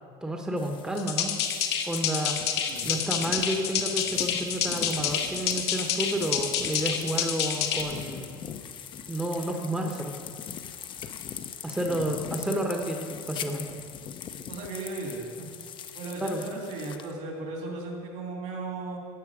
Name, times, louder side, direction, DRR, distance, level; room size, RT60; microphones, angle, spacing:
voice 1, 0.2-1.3 1.9-2.4 2.8-8.3 9.1-10.2 11.6-13.6 16.2-16.5, right 1 dB, 5° right, 2 dB, 1.0 m, -30 dB
sound 1, 0.6-17.1, left 8 dB, 40° left, 0.7 m, -42 dB
sound 2, 1.0-7.8, left 8 dB, 90° left, 1.1 m, -28 dB
voice 2, 14.5-15.5 15.9-19.0, right 3 dB, 65° right, 0 dB, 2.6 m, -36 dB
13.0 x 7.7 x 4.9 m, 2.2 s
supercardioid pair, 115°, 13 cm